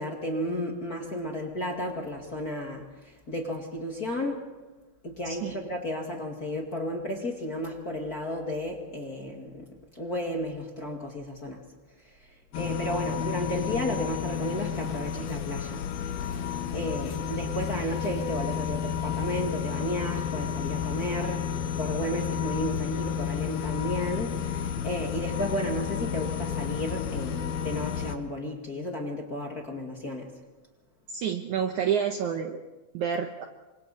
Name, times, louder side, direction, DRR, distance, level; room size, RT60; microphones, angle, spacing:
voice 1, 0.0-4.5 5.0-9.7 9.9-11.6 12.5-15.8 16.1-16.4 16.7-21.4 21.8-30.3, left 1 dB, 30° left, 0 dB, 1.8 m, -33 dB
sound 1, 12.5-28.2, left 8 dB, 80° left, 2.9 m, -31 dB
voice 2, 31.1-32.6 32.9-33.5, right 8 dB, 75° right, 5 dB, 1.9 m, -29 dB
28.5 x 25.0 x 4.2 m, 1.2 s
omnidirectional pair, 4.5 m